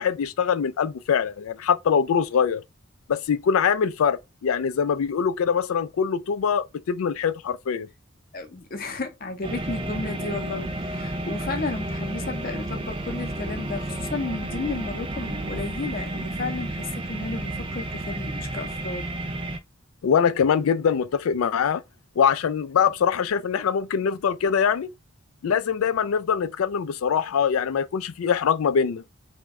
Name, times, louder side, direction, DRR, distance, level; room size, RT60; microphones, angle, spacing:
voice 1, 0.0-2.6 3.1-7.9 20.0-21.8 22.2-24.9 25.4-29.0, left 7 dB, 85° left, 0.4 m, -23 dB
voice 2, 8.3-19.1, left 3 dB, 45° left, 0.6 m, -33 dB
sound 1, 9.4-19.6, right 1 dB, 25° right, 0.4 m, -31 dB
3.0 x 2.2 x 3.5 m
head